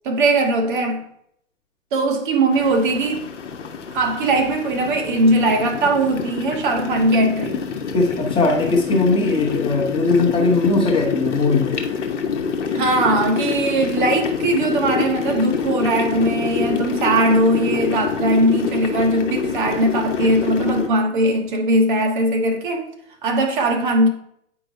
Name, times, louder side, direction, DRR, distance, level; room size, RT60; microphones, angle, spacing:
voice 1, 0.0-1.0 1.9-3.3 3.9-7.6 12.7-22.9 23.2-24.1, right 1 dB, 40° right, 0.8 m, -19 dB
sound 1, 2.5-20.9, left 6 dB, 60° left, 1.0 m, -26 dB
voice 2, 7.9-11.8, left 3 dB, 15° left, 0.9 m, -19 dB
8.7 x 4.7 x 2.7 m
figure-of-eight pair, 115°, 40 cm